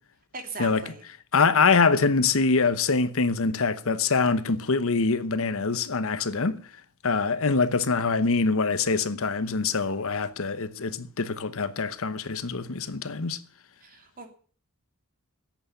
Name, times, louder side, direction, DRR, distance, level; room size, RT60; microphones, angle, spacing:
voice 1, 0.3-1.0 13.8-14.3, right 4 dB, 40° right, 2.9 m, -39 dB
voice 2, 1.3-6.6 7.0-13.4, left 4 dB, 65° left, 1.0 m, -24 dB
10.5 x 8.4 x 9.2 m
head